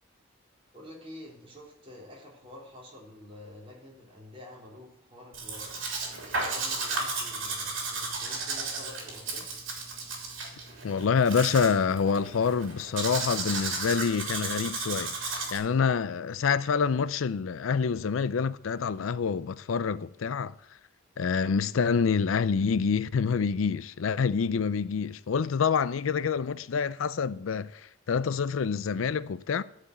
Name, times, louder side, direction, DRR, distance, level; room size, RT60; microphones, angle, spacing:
voice 1, 0.7-5.8 6.4-9.4, left 1 dB, 30° right, 3.8 m, -48 dB
Domestic sounds home sounds, 5.3-15.6, right 3 dB, 75° right, 3.2 m, -34 dB
voice 2, 10.8-20.6 21.2-29.6, left 6 dB, 90° left, 0.5 m, -27 dB
13.0 x 5.0 x 8.0 m
head